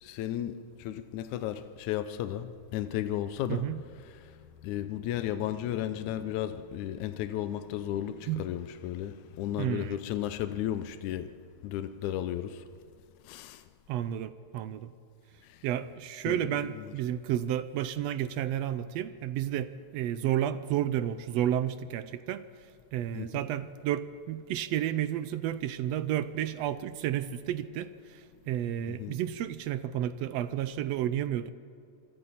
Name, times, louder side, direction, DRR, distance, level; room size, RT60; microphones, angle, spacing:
voice 1, 0.0-3.7 4.0-11.3 11.6-12.6 13.2-13.6 15.4-15.7 16.3-16.9 23.1-23.4 28.9-29.2, left 11 dB, 85° left, 2.2 m, -34 dB
voice 2, 3.5-3.8 8.3-8.5 9.6-10.0 13.9-14.9 15.6-22.5 22.9-28.2 28.5-31.5, right 11 dB, 75° right, 1.6 m, -31 dB
26.0 x 24.0 x 4.2 m
omnidirectional pair, 3.4 m